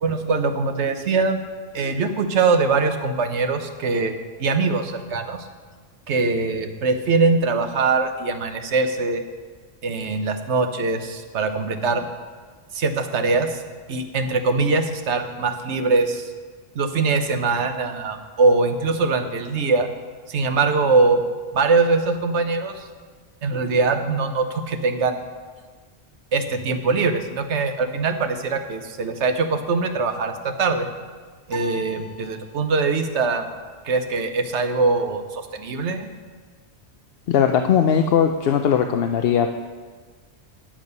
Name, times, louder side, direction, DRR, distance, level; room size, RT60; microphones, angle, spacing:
voice 1, 0.0-1.4 1.7-4.1 4.4-5.4 6.1-9.2 9.8-12.1 12.7-13.6 13.9-16.3 16.7-19.9 20.3-21.2 21.5-22.8 23.4-25.2 26.3-30.9 31.5-33.5 33.9-36.1, right 4 dB, 85° right, 7 dB, 1.2 m, -22 dB
sound 1, 31.5-33.0, equal, 15° right, 1.8 m, -39 dB
voice 2, 37.3-39.5, left 8 dB, 65° left, 5 dB, 0.8 m, -19 dB
10.5 x 8.8 x 5.4 m, 1.5 s
omnidirectional pair, 1.1 m